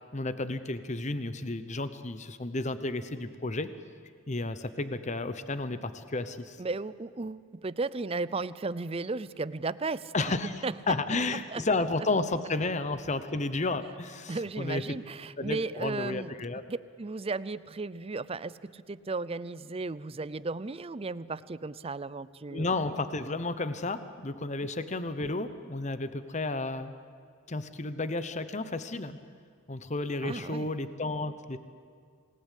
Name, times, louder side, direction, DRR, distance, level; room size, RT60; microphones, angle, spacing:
voice 1, 0.1-3.7 4.3-6.6 10.1-15.0 15.4-16.6 22.5-27.0 27.5-29.2 29.7-31.6, left 2 dB, 35° left, 12 dB, 0.9 m, -32 dB
voice 2, 6.6-10.7 11.5-11.6 14.3-16.3 16.7-22.7 30.2-30.7, right 3 dB, 30° right, 17 dB, 0.5 m, -35 dB
27.5 x 19.0 x 8.4 m, 2.2 s
head